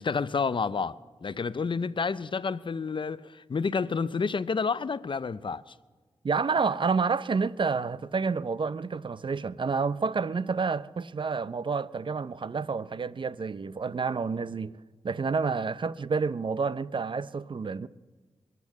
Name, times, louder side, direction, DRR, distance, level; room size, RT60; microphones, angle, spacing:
voice 1, 0.0-5.7, left 5 dB, 50° left, 0.6 m, -30 dB
voice 2, 6.2-17.9, right 5 dB, 50° right, 0.5 m, -29 dB
23.5 x 8.3 x 7.3 m
cardioid pair, 55°, 11 cm